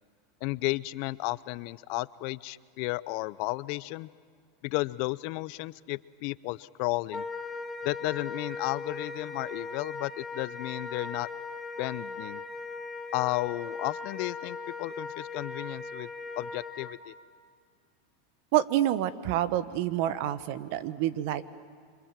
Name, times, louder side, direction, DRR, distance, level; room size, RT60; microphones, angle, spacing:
voice 1, 0.4-4.1 4.6-7.2 7.8-11.3 11.8-12.4 13.1-16.1 16.4-17.1, left 22 dB, 60° left, 19 dB, 0.6 m, -33 dB
Wind instrument woodwind instrument, 7.1-17.0, left 3 dB, 15° left, 1.9 m, -39 dB
voice 2, 18.5-21.4, right 12 dB, 65° right, 14 dB, 1.2 m, -28 dB
26.5 x 25.5 x 7.5 m, 2.1 s
hypercardioid pair, 110°, 0 cm